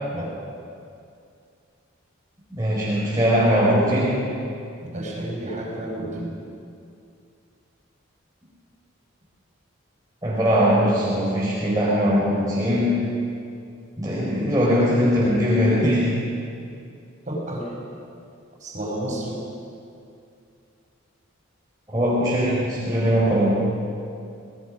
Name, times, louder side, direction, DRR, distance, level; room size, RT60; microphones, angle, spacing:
voice 1, 2.5-4.2 10.2-13.1 14.0-16.1 21.9-23.6, equal, 15° right, -7 dB, 4.6 m, -20 dB
voice 2, 4.9-6.3 17.2-17.7 18.6-19.5, right 1 dB, 35° right, -2 dB, 5.8 m, -31 dB
27.0 x 19.0 x 6.4 m, 2.5 s
head